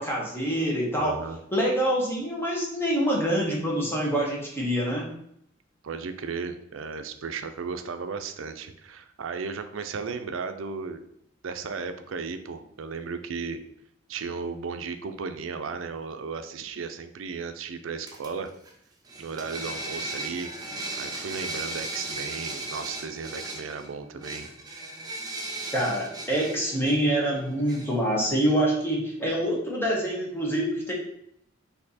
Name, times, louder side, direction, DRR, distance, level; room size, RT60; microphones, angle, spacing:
voice 1, 0.0-1.1 1.5-5.1 25.7-30.9, right 1 dB, 10° left, -3 dB, 1.1 m, -26 dB
voice 2, 1.0-1.4 5.8-11.0 11.4-13.6 14.1-18.5 19.2-20.5 21.0-24.5, right 5 dB, 75° right, 9 dB, 0.5 m, -35 dB
sound 1, 18.1-18.7 19.0-28.0, right 2 dB, 20° right, 0.8 m, -37 dB
4.3 x 2.7 x 4.1 m, 0.73 s
head